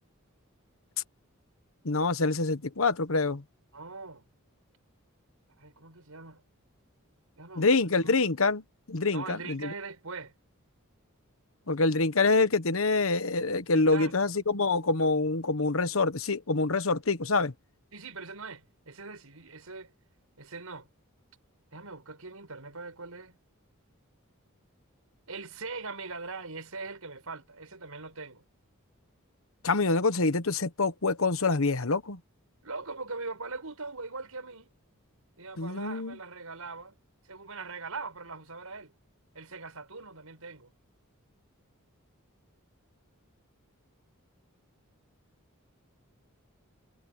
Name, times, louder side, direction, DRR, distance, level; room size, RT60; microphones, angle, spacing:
voice 1, 1.8-3.4 7.6-8.6 8.9-9.7 11.7-17.5 29.6-32.2 35.6-36.2, left 3 dB, 70° left, 1.3 m, -26 dB
voice 2, 3.7-4.3 5.6-6.4 7.4-7.7 8.0-8.1 9.1-10.3 13.7-14.3 17.9-19.9 20.4-20.9 21.7-23.4 25.3-28.4 32.6-34.7 35.4-37.0 37.2-38.9 39.3-40.7, right 4 dB, 85° right, 5.7 m, -41 dB
head